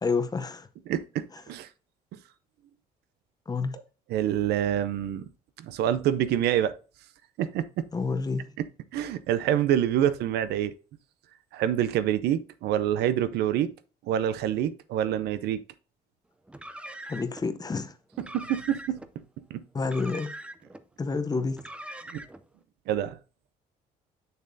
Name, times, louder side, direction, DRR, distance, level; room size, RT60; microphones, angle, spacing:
voice 1, 0.0-0.7 3.5-3.8 7.9-8.5 17.1-17.9 19.7-20.3 21.0-21.6, left 4 dB, 20° left, 0.7 m, -29 dB
voice 2, 0.9-1.7 4.1-5.2 5.6-6.8 7.4-7.9 8.6-8.7 8.9-10.7 11.5-13.7 14.0-15.6 18.3-19.0 19.5-19.6 22.1-22.2 22.9-23.2, right 11 dB, 75° right, 0.6 m, -26 dB
Car, 16.5-17.4 18.1-19.1 19.8-20.8 21.5-22.5, right 1 dB, 5° right, 0.5 m, -42 dB
6.7 x 6.6 x 2.6 m
cardioid pair, 110°, 17 cm